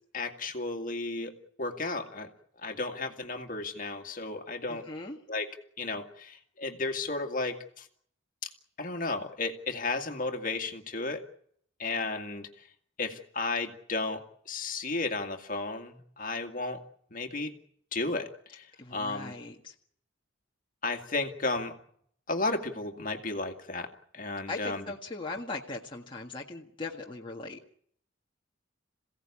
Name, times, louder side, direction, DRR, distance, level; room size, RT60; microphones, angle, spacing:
voice 1, 0.1-2.3 2.6-4.9 5.3-5.5 5.8-7.9 8.4-8.5 8.8-11.2 11.8-12.7 13.0-16.8 17.1-17.5 17.9-19.3 20.8-21.8 22.3-24.9, left 3 dB, 45° left, 5 dB, 2.1 m, -34 dB
voice 2, 4.7-5.2 18.8-19.7 24.5-27.6, left 3 dB, 25° left, -1 dB, 1.6 m, -39 dB
27.5 x 16.5 x 8.5 m, 0.68 s
head